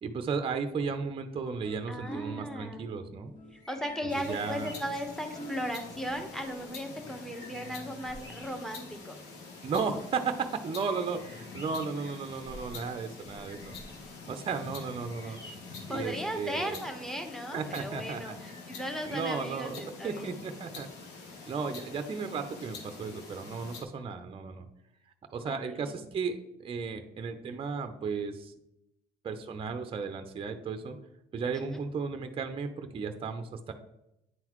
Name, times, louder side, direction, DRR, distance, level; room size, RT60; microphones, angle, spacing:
voice 1, 0.0-3.3 4.0-4.7 9.6-13.8 14.3-15.4 15.9-16.8 17.5-18.4 19.0-19.8 20.0-20.9 21.5-24.7 25.3-28.5 29.2-31.0 31.3-33.7, right 5 dB, 35° right, 7 dB, 0.6 m, -34 dB
sound 1, 1.3-6.8, right 2 dB, 50° left, 1.8 m, -47 dB
voice 2, 1.9-2.9 3.5-9.1 15.3-15.5 15.9-20.3 25.4-26.0 31.5-31.8, equal, ahead, 4 dB, 1.1 m, -37 dB
sound 2, 3.5-5.2 6.6-6.7 7.0-9.0 9.5-9.6 10.8-12.9 13.2-14.1 14.8-16.0 18.4-19.8, left 1 dB, 25° left, 1.6 m, -51 dB
sound 3, 4.1-23.8, left 3 dB, 85° left, 1.4 m, -46 dB
9.4 x 3.8 x 3.0 m, 0.84 s
cardioid pair, 110°, 17 cm